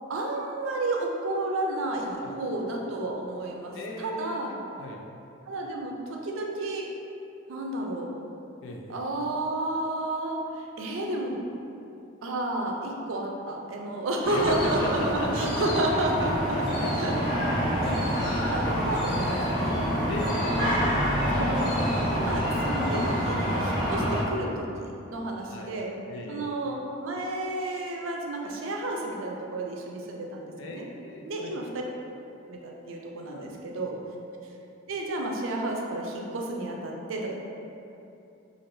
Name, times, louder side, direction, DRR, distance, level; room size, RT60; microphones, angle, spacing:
voice 1, 0.1-4.5 5.5-6.9 7.5-8.2 8.9-11.4 12.2-17.1 17.8-18.0 18.3-20.1 20.5-20.7 21.3-21.8 22.1-25.9 26.3-30.8 31.2-31.7 32.5-34.0 34.9-37.3, right 2 dB, 80° right, 0 dB, 0.4 m, -31 dB
voice 2, 3.7-5.0 8.6-9.0 14.3-17.3 20.1-20.3 20.6-21.0 25.4-25.8 26.1-26.5 30.6-31.6 33.3-33.5 33.9-34.0, left 2 dB, 70° left, 1 dB, 0.4 m, -38 dB
sound 1, 14.2-24.2, equal, 55° left, 1.2 m, -27 dB
3.2 x 2.5 x 2.6 m, 2.7 s
head